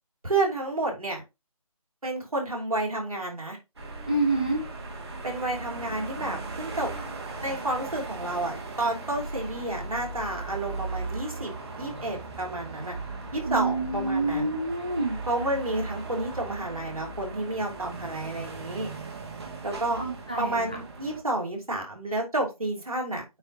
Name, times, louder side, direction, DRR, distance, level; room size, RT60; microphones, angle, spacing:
voice 1, 0.2-1.2 2.0-3.6 5.2-6.9 7.4-12.9 13.3-14.5 15.3-18.9 19.6-20.0 20.4-23.2, right 2 dB, 75° right, 3.1 m, -30 dB
sound 1, 3.8-21.2, right 3 dB, 45° right, 2.0 m, -38 dB
voice 2, 4.1-4.7 13.5-15.2 20.0-20.8, right 2 dB, 15° right, 0.4 m, -27 dB
8.6 x 4.1 x 2.8 m
figure-of-eight pair, 160°, 19 cm